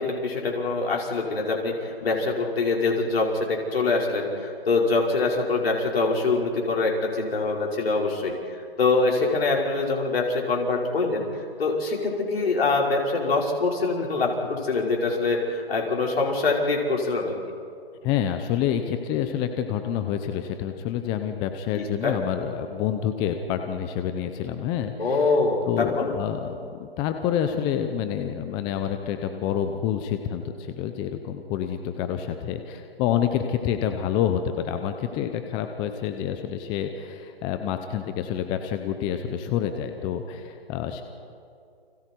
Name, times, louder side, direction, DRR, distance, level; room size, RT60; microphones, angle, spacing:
voice 1, 0.0-8.3 8.8-11.3 11.6-17.3 21.7-22.2 25.0-26.1, left 3 dB, 70° left, -1 dB, 5.4 m, -24 dB
voice 2, 18.0-25.4 25.6-41.0, left 9 dB, 15° left, 7 dB, 0.8 m, -28 dB
30.0 x 25.5 x 4.7 m, 2.4 s
hypercardioid pair, 145°, 31 cm